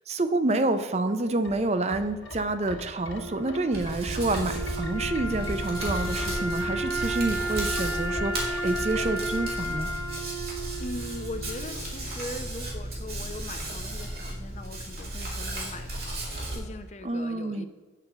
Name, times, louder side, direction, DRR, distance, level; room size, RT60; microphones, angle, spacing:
voice 1, 0.1-9.9 17.0-17.6, right 2 dB, 35° right, 10 dB, 0.5 m, -28 dB
sound 1, 1.3-10.2 10.6-10.7, left 1 dB, 85° left, 1.6 m, -40 dB
Wind instrument woodwind instrument, 2.9-12.0, right 1 dB, 20° left, 2.6 m, -33 dB
Hands, 3.7-16.6, right 1 dB, 55° right, 2.8 m, -35 dB
voice 2, 10.8-17.7, left 2 dB, 35° left, 8 dB, 0.7 m, -40 dB
8.3 x 5.3 x 7.8 m, 1.3 s
head